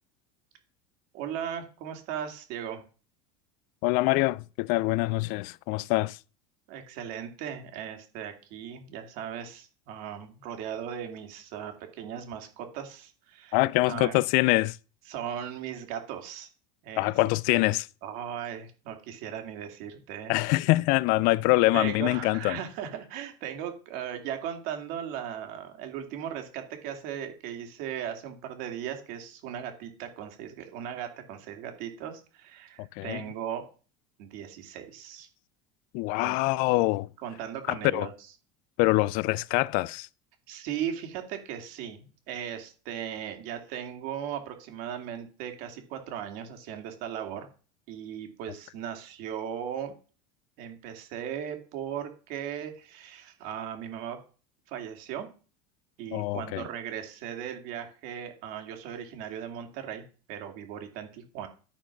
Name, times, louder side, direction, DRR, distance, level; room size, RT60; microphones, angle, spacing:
voice 1, 1.1-2.9 6.7-13.6 13.8-14.2 15.1-16.5 16.8-17.1 17.5-17.6 18.0-20.3 21.7-33.7 34.2-35.3 36.2-36.4 37.2-38.1 40.5-47.5 47.9-49.9 50.6-54.2 54.7-55.3 56.0-60.0 60.3-61.5, right 9 dB, 70° right, 2.5 m, -37 dB
voice 2, 3.8-6.2 13.5-14.8 17.0-17.8 20.3-22.6 32.8-33.2 35.9-37.1 37.7-38.1 38.8-40.1 56.1-56.6, left 20 dB, 65° left, 0.4 m, -25 dB
11.5 x 4.6 x 5.8 m
supercardioid pair, 110°, 16 cm